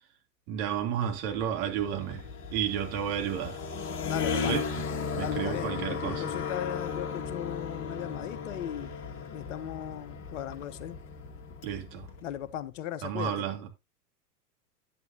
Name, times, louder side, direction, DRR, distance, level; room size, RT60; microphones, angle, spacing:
voice 1, 0.5-2.2 2.5-3.6 4.5-4.6 5.1-6.2 11.6-12.1 13.0-13.7, right 9 dB, 45° right, 3.0 m, -31 dB
sound 1, 1.0-12.6, left 5 dB, 25° left, 1.9 m, -36 dB
voice 2, 4.1-4.6 5.2-8.9 9.3-11.0 12.2-13.5, left 11 dB, 50° left, 1.0 m, -37 dB
11.0 x 9.5 x 2.8 m
figure-of-eight pair, 100°, 47 cm